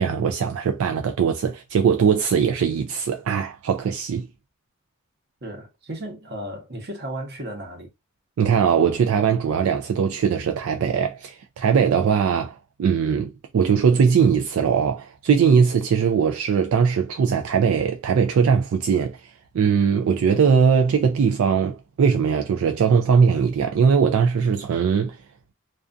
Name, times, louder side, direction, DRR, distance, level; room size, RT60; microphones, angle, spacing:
voice 1, 0.0-4.3 8.4-25.2, right 6 dB, 85° right, 0.3 m, -20 dB
voice 2, 5.4-7.9, right 1 dB, 55° right, 0.9 m, -34 dB
2.4 x 2.2 x 2.5 m
head